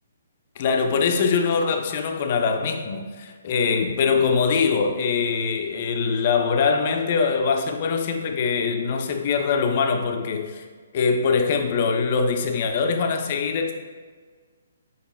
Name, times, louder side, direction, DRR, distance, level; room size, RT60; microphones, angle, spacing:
voice 1, 0.6-10.6 10.9-13.7, left 5 dB, 45° left, 5 dB, 0.5 m, -23 dB
4.9 x 4.4 x 2.2 m, 1.5 s
figure-of-eight pair, 135°, 0 cm